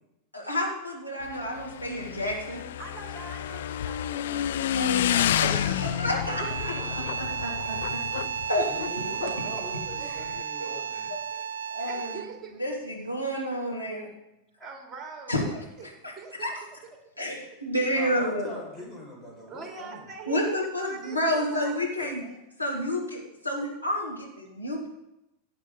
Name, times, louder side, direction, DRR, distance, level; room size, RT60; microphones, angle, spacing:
voice 1, 0.3-2.6 4.7-8.0 8.5-8.7 9.2-9.4 10.6-11.2 11.7-12.1 12.6-14.1 15.3-15.4 16.4-16.5 17.2-18.5 20.3-22.2 22.6-24.9, equal, 90° left, -3 dB, 2.8 m, -30 dB
Motorcycle / Engine, 1.2-10.4, left 11 dB, 60° left, 0.5 m, -30 dB
voice 2, 2.8-4.5 6.2-7.3 7.6-8.0 9.6-10.6 11.8-12.7 14.6-15.5 15.8-16.8 19.5-22.4, right 4 dB, 15° right, 1 dB, 3.0 m, -43 dB
sound 1, 6.2-12.4, right 7 dB, 60° right, 0.6 m, -33 dB
voice 3, 8.6-11.1 17.9-20.1, left 1 dB, 10° left, -3 dB, 5.6 m, -42 dB
17.0 x 8.2 x 4.0 m, 0.90 s
figure-of-eight pair, 90°, 0 cm